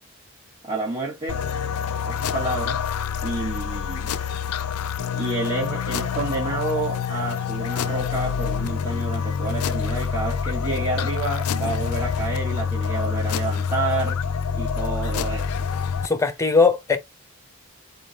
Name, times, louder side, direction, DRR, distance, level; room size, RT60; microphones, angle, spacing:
voice 1, 0.6-1.4 2.1-2.9 3.2-4.1 5.1-14.2 14.5-15.7, right 2 dB, 25° right, 1.8 m, -29 dB
sound 1, 1.3-16.1, left 6 dB, 85° left, 0.4 m, -26 dB
voice 2, 16.0-17.0, left 4 dB, 15° left, 0.9 m, -19 dB
4.1 x 3.8 x 3.0 m
head